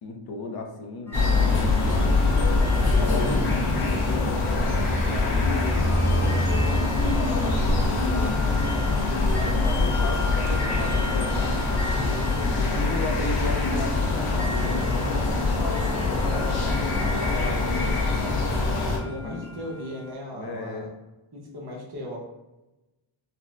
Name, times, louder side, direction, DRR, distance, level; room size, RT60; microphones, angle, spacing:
voice 1, 0.0-2.4 2.8-4.4 5.1-8.7 9.3-11.6 12.4-16.3 16.7-18.5 19.2-19.4 20.3-20.9, left 2 dB, 50° left, 3 dB, 0.6 m, -35 dB
sound 1, 1.1-19.0, left 3 dB, 90° left, 0.8 m, -23 dB
sound 2, 1.1-20.1, equal, 5° left, 0.9 m, -40 dB
voice 2, 19.0-20.9 21.3-22.2, left 1 dB, 50° right, -1 dB, 0.9 m, -37 dB
4.1 x 2.0 x 2.4 m, 1.0 s
wide cardioid pair, 90°, 50 cm